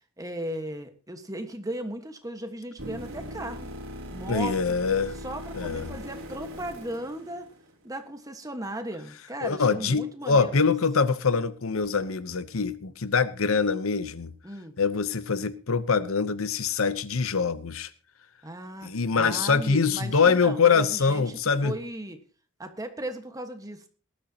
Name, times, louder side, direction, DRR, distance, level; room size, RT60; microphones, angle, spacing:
voice 1, 0.2-3.7 4.1-4.7 5.2-7.5 7.8-10.7 14.4-14.7 18.4-22.2 22.6-23.9, right 1 dB, 15° right, 1.5 m, -36 dB
sound 1, 2.8-7.9 11.8-11.9, equal, 85° right, 3.4 m, -40 dB
voice 2, 4.3-5.2 5.6-5.9 9.4-14.3 14.8-17.9 18.8-21.7, left 5 dB, 85° left, 0.9 m, -24 dB
19.0 x 12.5 x 2.9 m
head